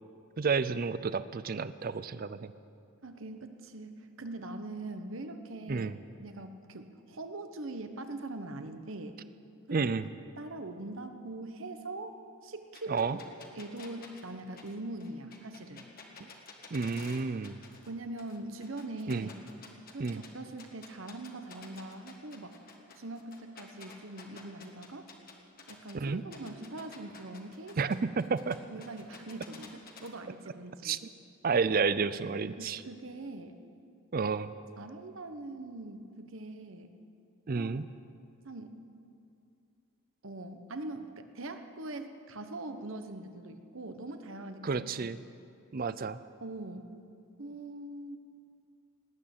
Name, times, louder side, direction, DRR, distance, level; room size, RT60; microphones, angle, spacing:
voice 1, 0.4-2.5 5.7-5.9 9.7-10.1 12.9-13.2 16.2-16.3 16.7-17.6 19.1-19.3 20.0-20.2 25.9-26.2 27.8-28.6 30.8-31.0 31.4-32.8 34.1-34.5 37.5-37.9 44.6-45.2 45.7-46.2, right 4 dB, 40° right, 15 dB, 0.4 m, -30 dB
voice 2, 3.0-5.9 6.2-9.2 9.7-9.9 10.4-12.1 12.4-13.1 13.5-15.8 17.9-19.3 19.9-22.6 23.0-25.1 25.7-27.8 28.7-31.0 32.0-32.1 32.4-33.6 34.8-36.9 37.5-37.7 38.4-38.8 40.2-45.1 46.4-46.9 47.4-48.2, right 2 dB, 60° right, 8 dB, 1.0 m, -42 dB
sound 1, 12.7-17.9 18.2-20.3 20.6-25.9 26.3-30.1, left 4 dB, 40° left, 1.6 m, -51 dB
19.0 x 8.8 x 8.7 m, 2.5 s
head